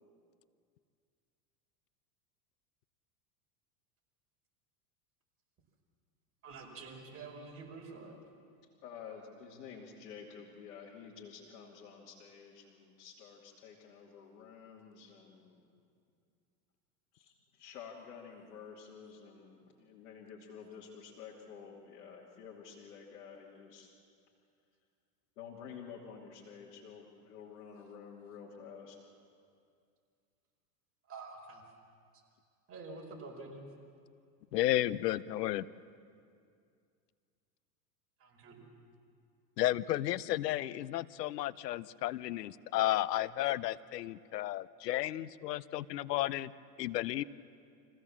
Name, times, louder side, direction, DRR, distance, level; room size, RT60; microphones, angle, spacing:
voice 1, 6.4-8.2 31.1-31.6 32.7-33.7 38.2-38.6, right 3 dB, 30° right, -1 dB, 5.1 m, -47 dB
voice 2, 8.8-15.7 17.1-23.9 25.4-29.0, left 6 dB, 70° left, -4 dB, 3.0 m, -50 dB
voice 3, 34.5-35.7 39.6-46.5 46.8-47.2, left 14 dB, 90° left, 18 dB, 0.7 m, -33 dB
25.5 x 16.0 x 7.3 m, 2.3 s
supercardioid pair, 120°, 47 cm